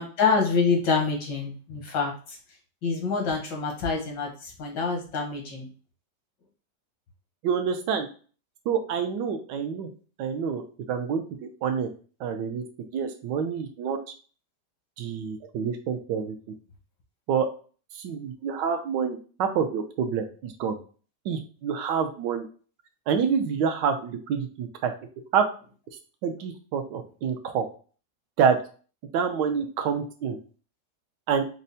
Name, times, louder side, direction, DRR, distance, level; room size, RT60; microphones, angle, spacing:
voice 1, 0.0-2.4 2.8-5.7, left 4 dB, 85° left, 1 dB, 1.8 m, -26 dB
voice 2, 7.4-8.1 8.7-9.9 10.2-11.2 11.6-11.9 12.2-12.6 12.9-14.0 15.0-16.4 17.3-17.5 17.9-20.8 21.2-22.5 23.1-24.9 25.3-25.4 26.2-27.6 28.4-28.6 29.1-30.4 31.3-31.4, right 7 dB, 80° right, 7 dB, 1.2 m, -27 dB
5.4 x 2.0 x 2.6 m, 0.39 s
omnidirectional pair, 1.9 m